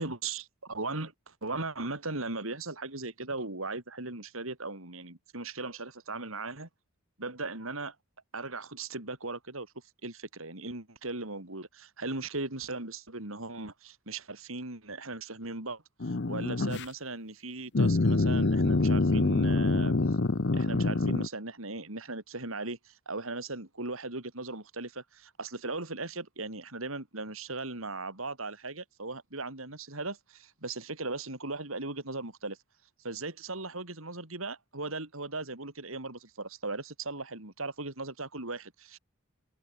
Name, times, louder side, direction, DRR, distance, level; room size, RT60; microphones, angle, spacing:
voice 1, 0.0-6.7 7.2-8.0 8.3-9.7 10.0-20.0 20.5-32.6 33.0-39.0, right 3 dB, 70° right, 4.0 m, -38 dB
sound 1, 16.0-16.8 17.7-21.3, left 3 dB, 55° left, 0.8 m, -26 dB
head